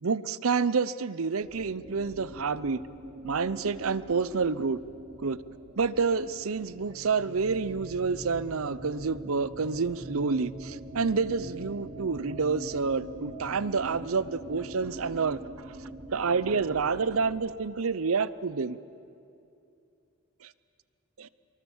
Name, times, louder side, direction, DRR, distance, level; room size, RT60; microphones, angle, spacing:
voice 1, 0.0-2.8 3.2-4.8 5.2-5.4 5.8-15.4 15.7-15.8 16.1-18.8 20.4-20.5 21.2-21.3, right 5 dB, 85° right, 17 dB, 0.7 m, -28 dB
sound 1, 1.4-17.3, right 1 dB, 35° right, 2.9 m, -44 dB
25.0 x 23.5 x 7.3 m, 2.6 s
head